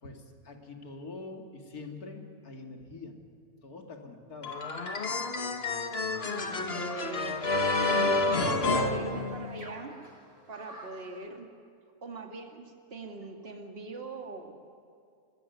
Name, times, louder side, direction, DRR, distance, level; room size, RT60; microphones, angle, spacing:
voice 1, 0.0-3.2 3.6-4.6, left 3 dB, 85° left, 3 dB, 2.9 m, -44 dB
sound 1, 4.4-9.8, left 3 dB, 45° left, 1.7 m, -29 dB
sound 2, 6.1-11.1, equal, 65° right, 7.7 m, -48 dB
voice 2, 6.2-10.0 10.5-11.5 12.0-14.6, right 3 dB, 40° right, 3 dB, 2.3 m, -41 dB
23.5 x 20.0 x 9.4 m, 2.5 s
omnidirectional pair, 1.5 m